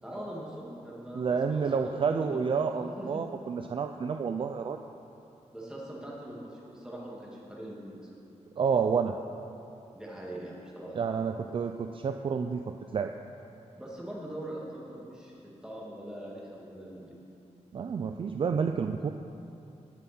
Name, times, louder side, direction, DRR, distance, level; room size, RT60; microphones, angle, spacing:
voice 1, 0.0-3.2 5.5-8.1 9.9-11.0 13.8-17.2, right 1 dB, 5° right, -5 dB, 2.0 m, -42 dB
voice 2, 1.1-4.8 8.6-9.2 10.9-13.1 17.7-19.1, right 6 dB, 45° right, 6 dB, 0.3 m, -29 dB
19.0 x 7.2 x 4.3 m, 2.8 s
wide cardioid pair, 180°, 12 cm